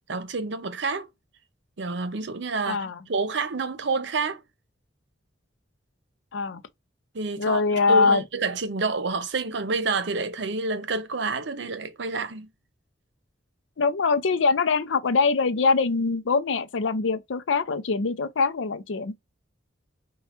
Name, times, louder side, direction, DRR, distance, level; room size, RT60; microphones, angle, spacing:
voice 1, 0.1-1.1 1.8-4.4 7.1-12.5, right 3 dB, 70° right, 0.7 m, -28 dB
voice 2, 2.6-3.0 6.3-6.6 7.4-8.2 13.8-19.1, left 4 dB, 90° left, 0.5 m, -23 dB
4.3 x 2.3 x 4.2 m
head